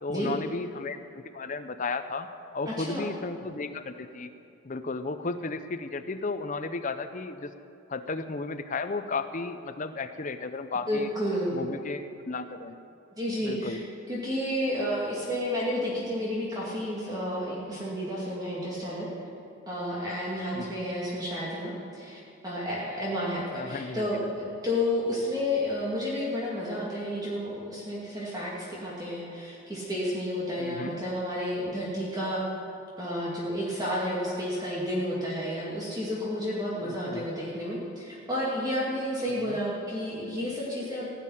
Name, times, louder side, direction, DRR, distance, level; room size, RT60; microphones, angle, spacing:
voice 1, 0.0-2.3 2.5-4.3 4.6-7.5 7.9-11.1 11.5-12.8 13.4-13.8 20.5-20.8 23.5-24.3 30.6-31.0 36.8-37.2 39.5-39.6, left 3 dB, 35° left, 10 dB, 0.6 m, -34 dB
voice 2, 2.7-3.1 10.9-11.6 13.2-13.8 14.1-19.1 19.7-32.4 33.0-41.1, left 1 dB, 15° right, -6 dB, 2.4 m, -31 dB
16.5 x 7.6 x 9.9 m, 2.7 s
head